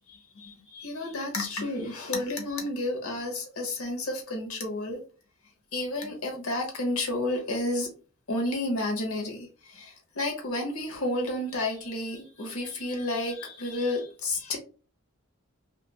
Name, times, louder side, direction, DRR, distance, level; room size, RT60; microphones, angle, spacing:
voice 1, 0.1-5.0 5.7-7.9 8.3-14.6, left 2 dB, 80° left, 3 dB, 0.8 m, -31 dB
2.9 x 2.4 x 2.2 m, 0.37 s
head